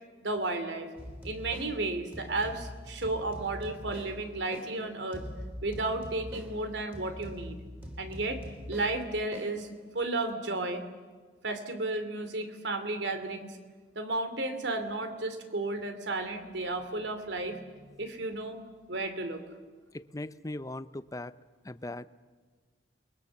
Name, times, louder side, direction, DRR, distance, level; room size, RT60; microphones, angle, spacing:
voice 1, 0.2-0.9 1.2-5.2 5.6-7.6 8.0-8.4 8.7-9.7 9.9-10.8 11.4-13.6 13.9-17.6 18.0-18.6 18.9-19.4, right 2 dB, 90° right, 9 dB, 2.7 m, -33 dB
sound 1, 1.0-10.1, equal, 10° right, 3.3 m, -44 dB
voice 2, 19.9-21.3 21.6-22.1, left 2 dB, 20° left, 14 dB, 0.7 m, -39 dB
29.5 x 22.0 x 7.3 m, 1.5 s
head